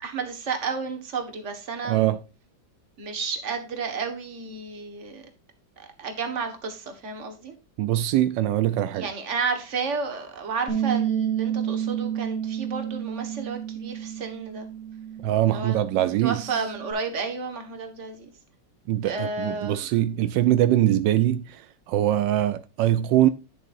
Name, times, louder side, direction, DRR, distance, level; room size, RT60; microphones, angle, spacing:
voice 1, 0.0-2.2 3.0-5.2 5.8-7.5 8.9-14.7 15.5-15.8 16.2-18.3 19.0-20.0, right 4 dB, 45° right, 1.7 m, -32 dB
voice 2, 1.9-2.2 7.8-9.1 15.2-16.5 18.9-21.6 21.9-23.3, right 12 dB, 85° right, 1.3 m, -22 dB
Bass guitar, 10.7-16.9, right 9 dB, 50° left, 2.6 m, -30 dB
10.5 x 6.9 x 2.5 m
omnidirectional pair, 1.9 m